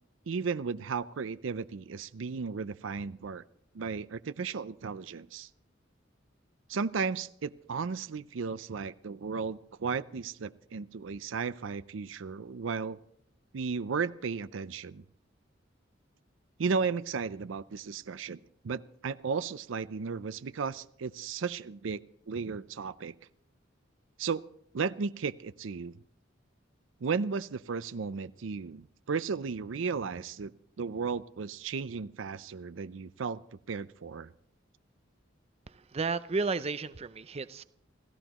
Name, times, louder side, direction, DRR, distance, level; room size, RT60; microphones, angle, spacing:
voice 1, 0.3-3.4 3.7-5.5 6.7-13.0 13.5-15.0 16.6-18.4 18.6-22.0 22.3-23.1 24.2-24.4 24.7-26.0 27.0-33.4 33.7-34.3, right 5 dB, 80° right, 15 dB, 0.5 m, -34 dB
voice 2, 35.7-37.6, right 4 dB, 35° right, 14 dB, 0.5 m, -33 dB
28.5 x 15.0 x 3.0 m, 0.72 s
head